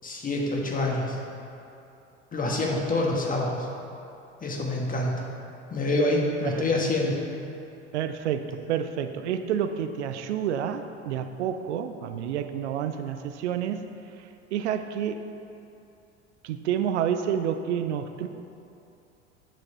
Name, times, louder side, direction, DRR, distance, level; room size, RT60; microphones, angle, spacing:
voice 1, 0.0-1.2 2.3-3.7 4.4-5.1 5.7-7.2, left 2 dB, 25° left, -1 dB, 1.5 m, -26 dB
voice 2, 7.9-13.8 14.5-15.3 16.4-18.3, right 9 dB, 75° right, 8 dB, 0.6 m, -29 dB
8.4 x 6.4 x 4.3 m, 2.8 s
hypercardioid pair, 75°, 35 cm